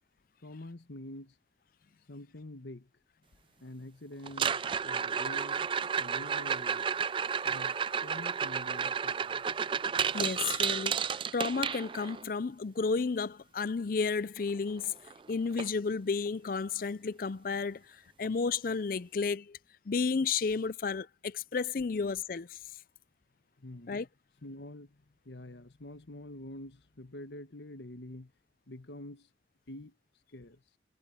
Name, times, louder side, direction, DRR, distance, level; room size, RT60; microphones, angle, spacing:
voice 1, 0.4-1.4 2.1-2.9 3.6-5.7 6.0-6.9 7.4-7.8 8.0-9.4 23.6-24.1 24.4-28.3 28.7-29.3 29.7-30.0 30.3-30.6, left 1 dB, 80° left, 1.3 m, -46 dB
sound 1, 4.3-12.2 14.5-14.6 14.8-15.2 15.6-15.7 16.3-16.4 18.2-18.3, right 7 dB, 30° right, 0.3 m, -32 dB
voice 2, 10.1-11.1 11.3-14.9 15.3-19.6 19.9-22.6 23.9-24.1, left 5 dB, 50° left, 0.5 m, -32 dB
head